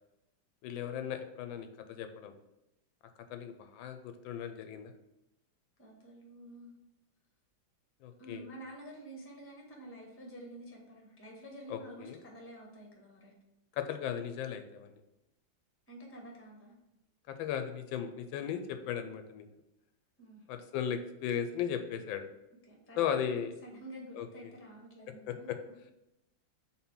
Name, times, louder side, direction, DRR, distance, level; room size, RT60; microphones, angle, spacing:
voice 1, 0.6-2.3 3.3-4.9 8.0-8.5 11.7-12.2 13.7-14.9 17.3-19.5 20.5-22.3 23.0-23.5 24.1-24.5 25.3-25.6, left 8 dB, 85° left, 8 dB, 1.3 m, -36 dB
voice 2, 5.8-6.7 8.2-13.3 15.9-16.7 20.2-20.4 22.7-25.5, right 1 dB, 10° left, 0 dB, 0.9 m, -49 dB
4.3 x 4.0 x 5.6 m, 0.91 s
omnidirectional pair, 2.1 m